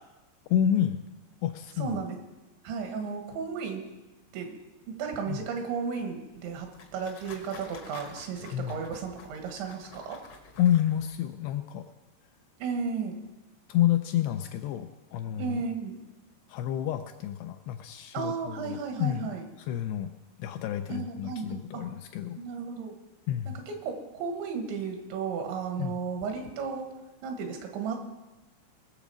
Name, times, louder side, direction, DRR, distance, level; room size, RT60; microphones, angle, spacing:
voice 1, 0.5-1.0 1.4-2.0 5.3-5.4 8.5-8.8 10.6-11.9 13.7-15.6 16.5-19.3 19.7-20.1 20.4-22.4 23.3-23.6 25.8-26.0, left 11 dB, 80° left, 7 dB, 2.4 m, -29 dB
voice 2, 1.8-2.2 2.6-3.8 4.3-4.6 4.9-10.2 12.6-13.2 15.4-16.0 18.1-19.4 20.9-21.8 22.4-22.9 23.7-26.9 27.2-28.0, right 5 dB, 85° right, 4 dB, 3.8 m, -34 dB
sound 1, 6.3-11.2, left 4 dB, 65° left, 1.6 m, -50 dB
20.0 x 7.1 x 5.0 m, 1.1 s
omnidirectional pair, 5.2 m